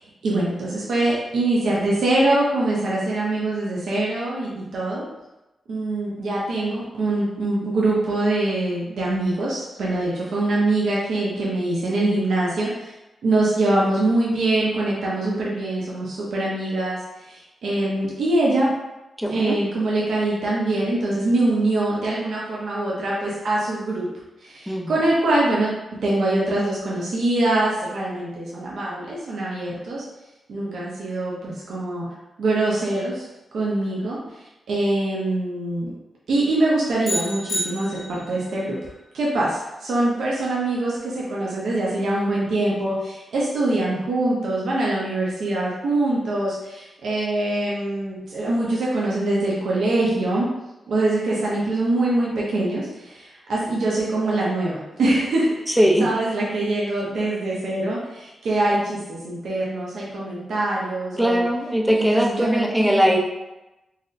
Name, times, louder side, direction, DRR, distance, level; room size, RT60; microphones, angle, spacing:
voice 1, 0.0-5.0 5.7-12.9 13.2-18.7 19.3-24.1 24.4-25.7 26.0-30.0 30.5-33.3 33.5-35.9 36.3-38.8 39.1-50.5 50.9-61.5 61.9-63.2, right 2 dB, 80° right, -6 dB, 0.6 m, -23 dB
voice 2, 19.2-19.6 24.7-24.9 55.8-56.1 61.2-63.2, equal, ahead, 0 dB, 0.4 m, -20 dB
sound 1, 37.0-38.4, equal, 65° left, 0.9 m, -29 dB
4.0 x 2.1 x 2.5 m, 0.99 s
cardioid pair, 100°, 0 cm